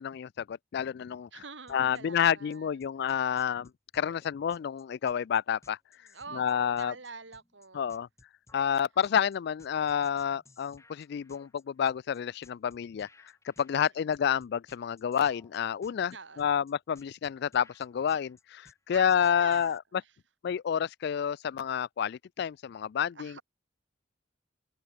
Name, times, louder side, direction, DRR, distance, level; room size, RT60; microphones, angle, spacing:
voice 1, 0.0-1.3 1.7-5.8 6.3-6.9 7.7-8.1 8.5-13.1 13.4-19.8 20.4-23.4, left 8 dB, 60° left, 0.3 m, -29 dB
voice 2, 1.3-2.8 6.1-8.0 13.8-13.9 16.1-16.6 18.9-20.1 23.1-23.4, right 4 dB, 75° right, 3.5 m, -47 dB
sound 1, 1.7-19.8, left 2 dB, 15° left, 1.5 m, -60 dB
head